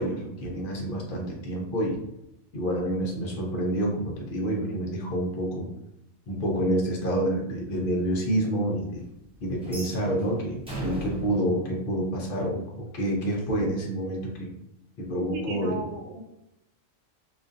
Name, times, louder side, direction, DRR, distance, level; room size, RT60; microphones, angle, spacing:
voice 1, 0.0-2.0 2.5-5.7 6.3-9.1 9.4-14.5 15.0-15.9, right 1 dB, 55° left, -1 dB, 0.6 m, -28 dB
sound 1, 9.6-12.7, right 1 dB, 10° right, 0.3 m, -37 dB
voice 2, 15.3-16.2, right 3 dB, 90° right, 2 dB, 1.0 m, -35 dB
2.4 x 2.3 x 2.5 m, 0.84 s
omnidirectional pair, 1.4 m